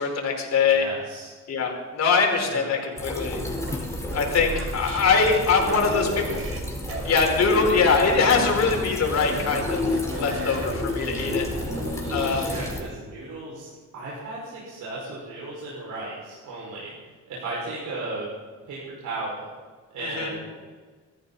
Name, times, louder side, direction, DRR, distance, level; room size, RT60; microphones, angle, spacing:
voice 1, 0.0-0.8 1.5-3.4 4.1-6.1 7.0-9.9 10.1-11.4 12.1-12.5 20.0-20.3, left 5 dB, 60° left, 1 dB, 4.7 m, -22 dB
voice 2, 0.6-1.3 2.4-3.0 5.6-6.5 12.4-16.9 17.3-18.3 18.6-19.5 19.9-20.5, right 2 dB, 80° right, -6 dB, 5.9 m, -35 dB
sound 1, 3.0-12.8, left 2 dB, 10° left, 4.6 m, -32 dB
sound 2, 3.7-6.6 6.9-8.7 9.1-12.8, right 2 dB, 50° right, 4.3 m, -34 dB
22.0 x 14.5 x 4.2 m, 1.5 s
cardioid pair, 90°, 30 cm